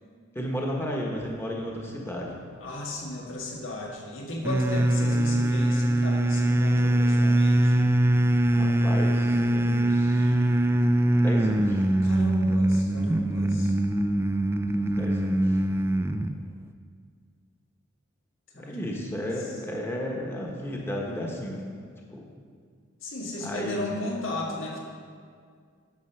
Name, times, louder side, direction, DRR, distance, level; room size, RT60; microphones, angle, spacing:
voice 1, 0.3-2.4 8.5-10.3 11.1-11.8 15.0-15.4 18.5-21.6 22.1-22.2 23.4-23.8, equal, 10° left, -1 dB, 1.1 m, -33 dB
voice 2, 2.6-7.9 12.0-13.7 18.5-19.6 23.0-24.8, left 1 dB, 85° left, -1 dB, 1.6 m, -35 dB
sound 1, 4.4-16.4, right 1 dB, 10° right, 0.3 m, -23 dB
9.2 x 7.2 x 5.8 m, 2.1 s
head